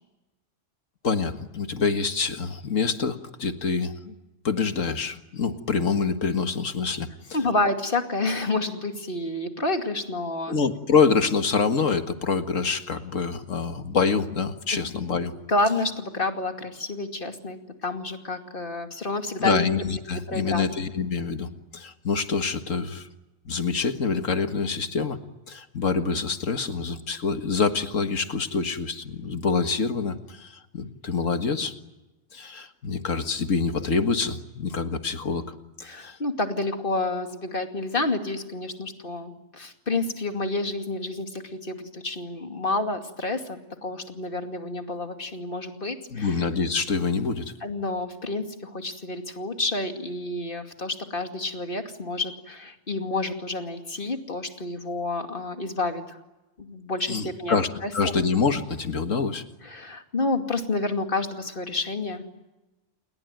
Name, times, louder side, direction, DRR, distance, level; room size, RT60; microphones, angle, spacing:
voice 1, 1.0-4.2 4.4-7.1 10.5-15.3 19.4-23.1 23.5-25.2 25.5-31.7 32.3-36.2 46.1-47.5 57.1-57.7 57.9-59.4, left 5 dB, 80° left, 8 dB, 2.1 m, -26 dB
voice 2, 7.3-10.6 14.7-14.8 15.2-20.6 35.8-46.4 47.6-56.2 56.6-58.1 59.6-62.2, left 2 dB, 45° left, 6 dB, 2.7 m, -29 dB
29.5 x 21.5 x 9.2 m, 1.1 s
omnidirectional pair, 1.3 m